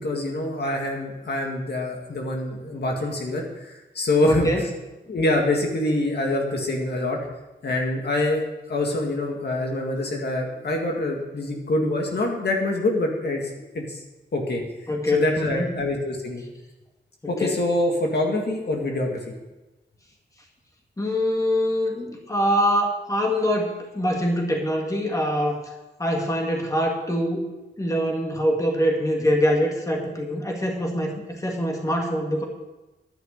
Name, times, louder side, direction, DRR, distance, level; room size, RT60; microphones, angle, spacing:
voice 1, 0.0-4.5 5.1-7.2 7.6-13.4 13.7-14.0 14.3-14.6 15.1-16.4 17.3-19.2, left 2 dB, 60° left, 1 dB, 2.0 m, -25 dB
voice 2, 4.2-4.6 14.9-15.8 17.4-17.6 21.0-25.6 26.0-27.4 27.8-32.5, equal, 15° left, 1 dB, 2.0 m, -24 dB
11.0 x 6.1 x 8.2 m, 1.1 s
wide cardioid pair, 100°, 19 cm